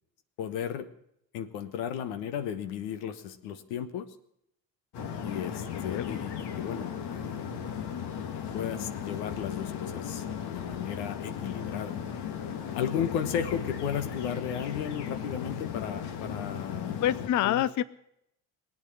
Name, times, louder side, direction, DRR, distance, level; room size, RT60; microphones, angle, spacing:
voice 1, 0.4-0.9 1.3-4.1 5.2-7.5 8.5-12.0 12.7-17.0 17.4-17.6, left 8 dB, 85° left, 11 dB, 1.3 m, -34 dB
sound 1, 4.9-17.3, left 8 dB, 65° left, 1.7 m, -36 dB
voice 2, 5.5-6.2 17.0-17.8, left 11 dB, 45° left, 16 dB, 0.6 m, -28 dB
19.5 x 8.7 x 8.5 m, 0.76 s
supercardioid pair, 70°, 43 cm